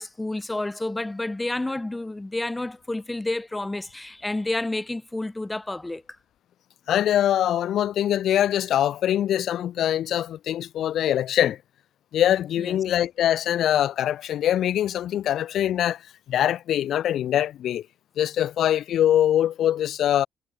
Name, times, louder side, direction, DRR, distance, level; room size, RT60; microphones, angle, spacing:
voice 1, 0.0-6.0 12.6-12.8, left 2 dB, 15° left, 0.9 m, -30 dB
voice 2, 6.9-11.6 12.1-16.0 16.3-17.8 18.2-20.3, left 11 dB, 75° left, 0.7 m, -23 dB
cardioid pair, 90°, 0 cm